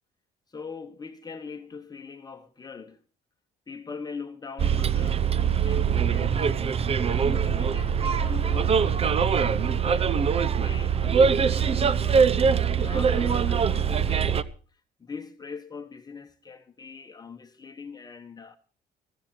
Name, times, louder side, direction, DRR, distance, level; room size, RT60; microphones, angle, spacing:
voice 1, 0.5-3.0 3.7-6.6 7.0-12.2 12.8-18.6, left 5 dB, 25° left, 1.4 m, -42 dB
Bus, 4.6-14.4, right 7 dB, 35° right, 0.9 m, -23 dB
15.0 x 15.0 x 4.6 m
cardioid pair, 110°, 17 cm